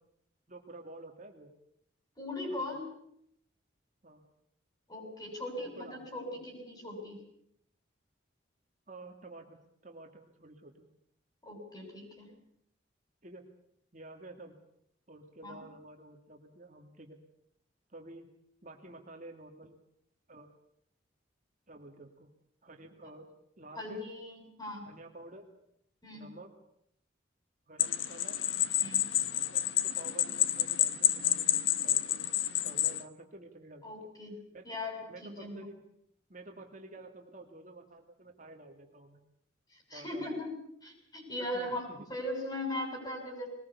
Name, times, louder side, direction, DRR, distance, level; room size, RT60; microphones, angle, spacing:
voice 1, 0.5-1.5 4.0-4.2 5.5-6.0 6.3-6.4 8.9-10.9 13.2-13.4 13.9-14.6 15.1-17.2 17.9-18.3 18.6-19.8 20.3-20.5 21.7-22.3 22.6-23.3 23.6-24.0 24.8-25.5 26.1-26.5 27.7-28.4 29.5-32.3 32.6-33.8 34.5-34.7 35.1-35.8 36.3-39.2 39.9-40.3 41.5-42.1, right 2 dB, 40° right, 3 dB, 2.2 m, -50 dB
voice 2, 2.2-2.9 4.9-7.2 11.4-12.4 15.4-15.6 23.7-24.9 26.0-26.3 28.8-29.1 33.8-34.3 34.6-35.7 39.7-40.5 40.8-41.8 42.1-43.5, left 1 dB, 20° left, 2 dB, 7.3 m, -39 dB
sound 1, 27.8-33.0, left 12 dB, 80° left, 1.1 m, -29 dB
21.5 x 20.0 x 8.3 m, 0.73 s
head